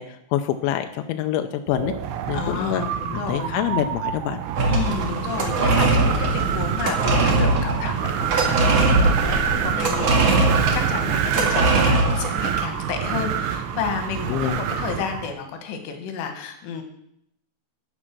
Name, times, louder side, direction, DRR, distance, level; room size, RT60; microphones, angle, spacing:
voice 1, 0.0-1.9 2.3-2.8 3.3-4.4 14.3-14.6, left 11 dB, 85° left, 7 dB, 2.7 m, -25 dB
Wind, 1.7-15.3, right 9 dB, 90° right, 3.6 m, -27 dB
voice 2, 2.3-3.5 4.7-16.8, left 6 dB, 70° left, 5 dB, 3.3 m, -31 dB
sound 1, 4.6-12.5, right 2 dB, 70° right, 1.5 m, -21 dB
10.5 x 10.0 x 6.1 m, 0.75 s
omnidirectional pair, 5.9 m